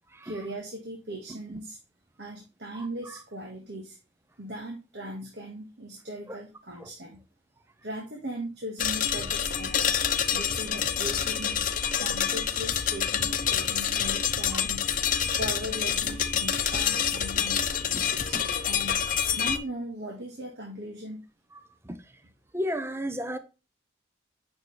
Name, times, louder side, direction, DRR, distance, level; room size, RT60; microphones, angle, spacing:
voice 1, 0.2-1.8 2.2-4.0 4.4-7.2 7.8-9.9 10.3-11.6 12.0-14.8 15.3-19.0 19.4-21.2, right 1 dB, 65° right, 1.7 m, -39 dB
sound 1, 8.8-19.6, left 8 dB, 45° left, 0.8 m, -27 dB
voice 2, 22.5-23.4, equal, 15° right, 0.6 m, -32 dB
9.2 x 6.2 x 3.2 m
head